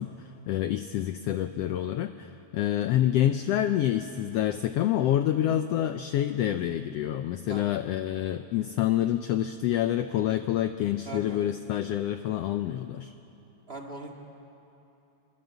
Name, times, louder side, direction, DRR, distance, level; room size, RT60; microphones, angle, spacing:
voice 1, 0.0-13.1, left 12 dB, 75° left, 9 dB, 1.5 m, -27 dB
voice 2, 11.0-11.4 13.7-14.1, right 2 dB, 25° right, 0 dB, 1.6 m, -40 dB
24.0 x 22.5 x 8.1 m, 3.0 s
omnidirectional pair, 3.4 m